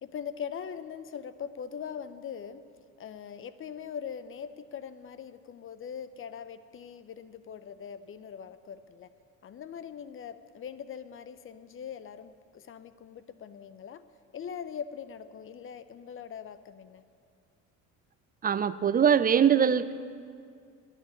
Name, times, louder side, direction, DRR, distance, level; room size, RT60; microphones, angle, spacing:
voice 1, 0.0-2.7 3.0-9.1 9.4-14.1 14.3-17.0, left 7 dB, 40° left, 13 dB, 0.6 m, -41 dB
voice 2, 18.4-19.9, right 8 dB, 25° right, 15 dB, 0.5 m, -22 dB
10.5 x 9.9 x 8.2 m, 2.2 s
supercardioid pair, 80°, 32 cm